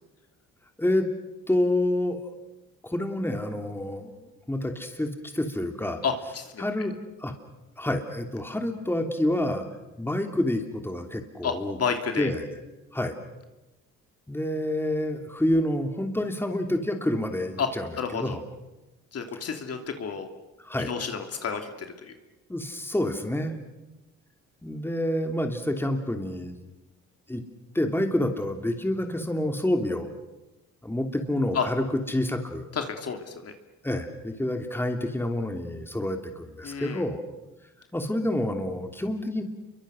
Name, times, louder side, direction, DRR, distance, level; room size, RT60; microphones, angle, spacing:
voice 1, 1.5-2.2 2.8-4.1 4.5-6.0 6.6-7.3 7.8-9.7 10.0-11.8 12.2-12.5 12.9-13.1 14.3-18.4 20.6-20.9 22.5-23.5 24.6-26.6 27.3-27.4 27.7-30.1 30.8-32.7 33.8-37.2 37.9-39.4, left 1 dB, 5° left, 5 dB, 3.0 m, -28 dB
voice 2, 6.0-6.6 11.4-12.3 17.6-17.7 17.9-18.4 19.1-20.3 20.9-22.1 31.5-31.7 32.7-33.5 36.6-37.0, left 6 dB, 55° left, 5 dB, 2.8 m, -30 dB
28.5 x 23.5 x 6.4 m, 1.0 s
cardioid pair, 90°, 30 cm